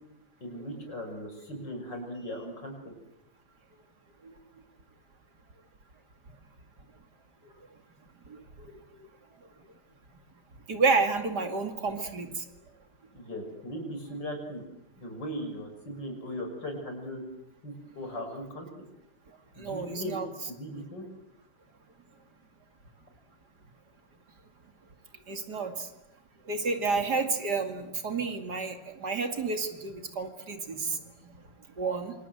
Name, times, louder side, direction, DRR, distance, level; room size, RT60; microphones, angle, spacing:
voice 1, 0.4-2.7 13.1-14.6 15.0-17.2 17.6-18.8 19.5-20.2 20.4-21.1, equal, 70° left, 4 dB, 6.6 m, -38 dB
voice 2, 10.7-12.3 19.6-20.3 25.3-25.9 26.5-31.0 31.8-32.1, right 4 dB, 60° right, 6 dB, 3.0 m, -30 dB
27.5 x 27.0 x 7.9 m, 0.90 s
omnidirectional pair, 2.0 m